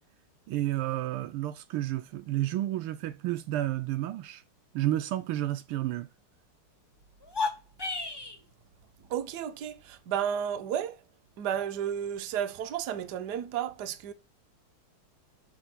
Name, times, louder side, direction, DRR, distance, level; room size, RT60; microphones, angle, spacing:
voice 1, 0.5-4.4 4.7-6.1, right 14 dB, 80° right, 1.5 m, -31 dB
sound 1, 7.2-8.4, left 4 dB, 20° left, 0.6 m, -32 dB
voice 2, 9.0-11.0 11.4-14.1, right 9 dB, 60° right, 1.3 m, -32 dB
6.1 x 5.4 x 6.0 m
omnidirectional pair, 2.4 m